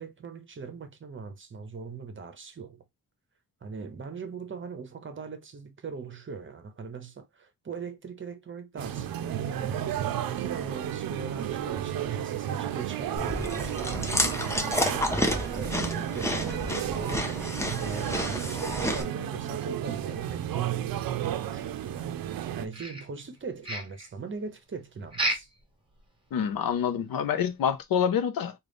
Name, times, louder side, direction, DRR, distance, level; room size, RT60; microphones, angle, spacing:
voice 1, 0.0-2.8 3.6-14.9 15.3-17.4 17.8-25.5, right 5 dB, 35° right, 0.7 m, -40 dB
sound 1, 8.8-22.7, right 11 dB, 75° right, 0.5 m, -32 dB
Chewing mastication, 13.2-19.0, left 1 dB, 10° left, 0.6 m, -30 dB
sound 2, 22.7-23.4 23.6-24.1 25.1-25.6 26.0-26.1 26.5-26.6 27.1-27.2, right 1 dB, 15° right, 1.1 m, -31 dB
voice 2, 26.3-28.5, left 8 dB, 75° left, 0.6 m, -27 dB
3.8 x 2.4 x 3.3 m
wide cardioid pair, 160°, 35 cm